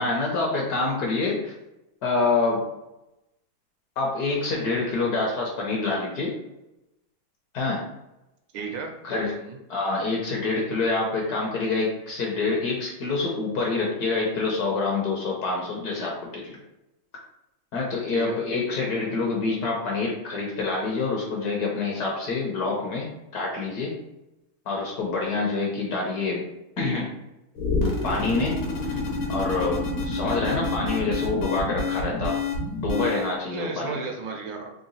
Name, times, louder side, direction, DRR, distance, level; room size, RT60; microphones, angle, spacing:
voice 1, 0.0-1.5 2.0-2.6 4.0-6.4 7.5-7.9 9.0-9.4 9.7-16.6 17.7-23.9 24.7-26.4 26.8-27.1 28.0-29.0 29.3-32.4 32.8-34.0, left 3 dB, 60° left, -2 dB, 1.1 m, -26 dB
voice 2, 8.5-8.9 9.4-9.6 18.1-18.4 33.4-34.7, right 5 dB, 75° right, 3 dB, 1.2 m, -33 dB
sound 1, 27.5-33.3, left 2 dB, 80° left, 1.7 m, -28 dB
3.9 x 2.2 x 3.8 m, 0.91 s
omnidirectional pair, 2.2 m